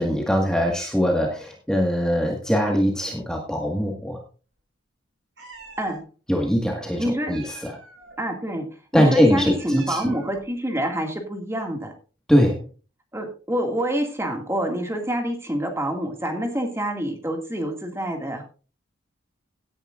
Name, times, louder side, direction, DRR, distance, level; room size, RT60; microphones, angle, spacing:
voice 1, 0.0-4.2 6.3-7.8 8.9-10.0 12.3-12.6, equal, 5° left, 0 dB, 1.7 m, -22 dB
Meow, 5.4-6.0 7.2-8.1 9.4-10.5, right 3 dB, 60° right, 7.7 m, -44 dB
voice 2, 7.0-7.4 8.2-8.7 8.9-11.9 13.1-18.4, right 1 dB, 15° right, 3 dB, 2.2 m, -27 dB
17.0 x 9.9 x 2.5 m, 0.36 s
head